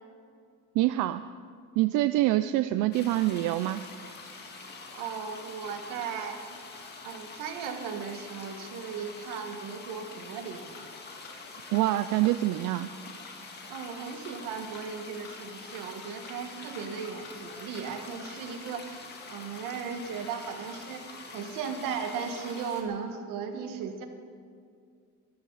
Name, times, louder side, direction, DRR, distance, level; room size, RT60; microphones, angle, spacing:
voice 1, 0.8-1.2 1.8-3.8 11.7-12.9, right 15 dB, 70° right, 12 dB, 0.5 m, -25 dB
sound 1, 2.9-22.8, left 4 dB, 30° left, 1.8 m, -45 dB
voice 2, 4.5-6.4 7.0-10.8 13.4-24.1, right 6 dB, 85° right, 5 dB, 1.8 m, -37 dB
sound 2, 10.7-10.8 11.2-11.3 11.7-11.8 12.2-12.3 12.7-12.8 13.2-13.3 13.7-13.8 14.2-14.3 14.7-14.8 15.2-15.3 15.7-15.8 16.2-16.3 16.7-16.8 17.2-17.3 17.7-17.8 18.2-18.3, left 4 dB, 50° left, 3.7 m, -48 dB
23.0 x 13.5 x 4.1 m, 2.3 s
cardioid pair, 170°, 32 cm